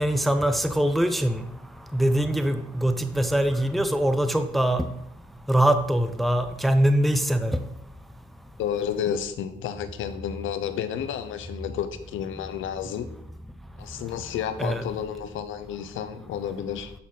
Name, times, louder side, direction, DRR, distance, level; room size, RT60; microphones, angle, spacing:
voice 1, 0.0-1.4 1.9-4.9 5.5-7.6 14.6-14.8, right 1 dB, ahead, 8 dB, 0.6 m, -23 dB
voice 2, 8.6-13.1 13.8-16.9, left 9 dB, 80° left, 11 dB, 0.7 m, -31 dB
10.5 x 4.1 x 3.8 m, 0.77 s
cardioid pair, 90°, 20 cm